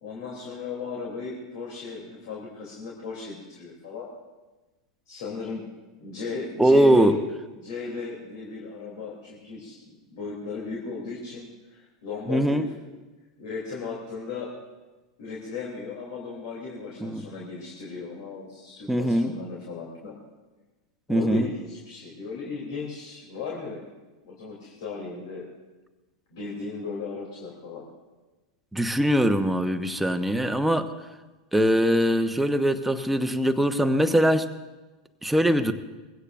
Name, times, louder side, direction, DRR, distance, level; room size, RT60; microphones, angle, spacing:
voice 1, 0.0-4.1 5.1-5.7 6.0-7.1 7.5-12.9 13.4-14.5 15.2-20.2 21.1-23.8 24.2-25.5 26.3-27.8, left 4 dB, 65° left, -3 dB, 3.0 m, -36 dB
voice 2, 6.6-7.2 12.3-12.7 17.0-17.2 18.9-19.3 21.1-21.5 28.7-30.9 31.5-34.5 35.2-35.7, equal, 5° right, 7 dB, 1.0 m, -21 dB
21.5 x 16.0 x 2.6 m, 1.2 s
hypercardioid pair, 90°, 2 cm